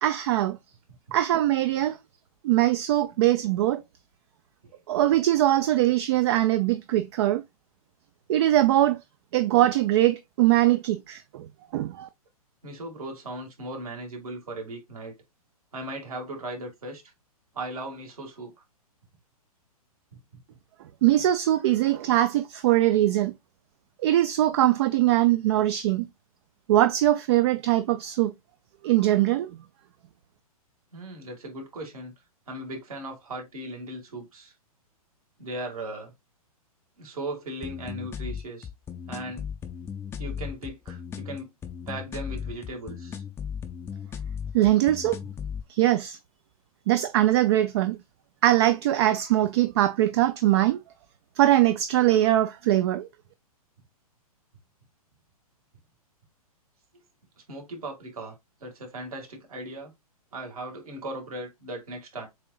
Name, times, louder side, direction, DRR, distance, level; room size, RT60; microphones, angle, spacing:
voice 1, 0.0-0.6 1.1-2.0 2.4-3.8 4.9-7.4 8.3-9.0 9.3-12.1 21.0-23.3 24.0-26.1 26.7-28.3 28.8-29.5 44.5-45.2 45.7-46.2 46.9-48.0 48.4-50.8 51.4-53.1, right 14 dB, 45° right, 0.4 m, -22 dB
voice 2, 12.6-15.1 15.7-17.1 17.5-18.5 30.9-32.1 32.5-34.5 35.4-36.1 37.0-38.7 39.1-39.4 40.2-41.5 41.9-43.2 57.5-59.9 60.3-62.3, right 1 dB, 70° right, 2.2 m, -37 dB
sound 1, 37.6-45.6, left 7 dB, 15° left, 0.5 m, -36 dB
7.4 x 2.8 x 2.4 m
figure-of-eight pair, 115°, 19 cm